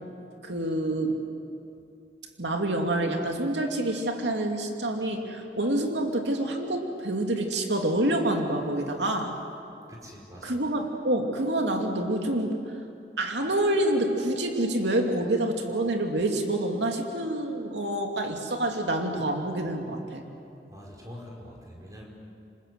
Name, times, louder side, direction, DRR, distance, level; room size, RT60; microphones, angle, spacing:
voice 1, 0.4-1.2 2.4-9.3 10.4-12.6 13.2-20.3, right 1 dB, 80° right, 2 dB, 2.7 m, -27 dB
voice 2, 9.9-10.6 20.7-22.1, equal, 20° right, -2 dB, 5.1 m, -44 dB
27.5 x 26.0 x 8.0 m, 2.6 s
head